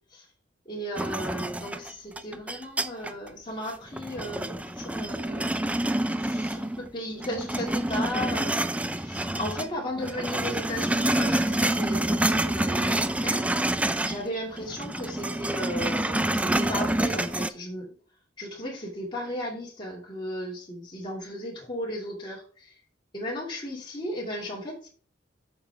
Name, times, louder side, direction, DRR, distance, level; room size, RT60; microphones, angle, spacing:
voice 1, 0.7-5.5 6.2-8.6 8.9-13.4 14.0-17.9 18.4-22.7 23.1-24.9, equal, 25° left, -4 dB, 2.3 m, -35 dB
sound 1, 1.0-3.3 3.7-6.9 7.2-9.7 10.0-14.3 14.5-17.5, right 1 dB, 5° right, 0.4 m, -27 dB
8.7 x 6.5 x 3.4 m, 0.44 s
head